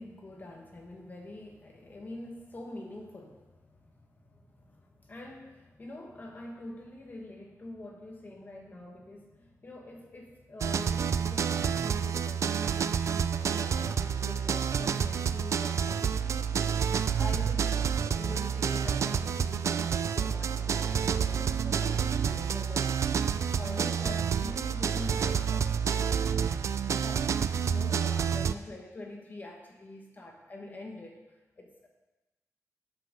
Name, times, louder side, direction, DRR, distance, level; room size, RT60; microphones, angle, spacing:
voice 1, 0.0-16.5 17.2-17.7 18.0-22.9 23.5-25.7 26.9-31.2 31.6-31.9, left 2 dB, 30° left, 1 dB, 1.3 m, -45 dB
sound 1, 10.6-28.5, right 7 dB, 55° right, 0.3 m, -29 dB
8.7 x 5.7 x 6.5 m, 1.1 s
wide cardioid pair, 175°, 6 cm